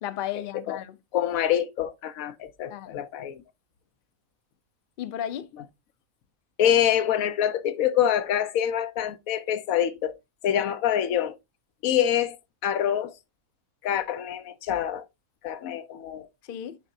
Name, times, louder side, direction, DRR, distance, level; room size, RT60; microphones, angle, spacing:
voice 1, 0.0-1.0 2.7-3.0 5.0-5.5 16.4-16.8, left 11 dB, 55° left, 0.6 m, -34 dB
voice 2, 1.1-3.4 6.6-10.2 10.4-11.4 11.8-12.4 12.6-13.1 13.8-15.1 15.4-16.3, left 10 dB, 85° left, 1.1 m, -25 dB
7.5 x 4.9 x 2.7 m
omnidirectional pair, 1.4 m